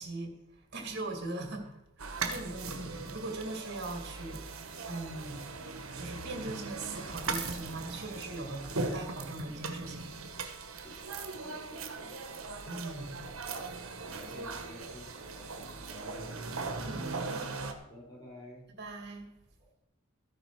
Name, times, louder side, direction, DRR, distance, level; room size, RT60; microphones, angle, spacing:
voice 1, 0.0-5.4 5.9-10.1 12.7-13.3 16.8-17.6 18.8-19.3, right 2 dB, 55° right, 3 dB, 2.3 m, -40 dB
sound 1, 2.0-17.7, right 4 dB, 80° right, 1.4 m, -39 dB
voice 2, 10.7-12.2 13.4-13.7 14.0-16.5 17.9-18.7 19.6-19.7, left 1 dB, 20° left, -6 dB, 5.8 m, -52 dB
14.0 x 10.0 x 4.8 m, 0.86 s
head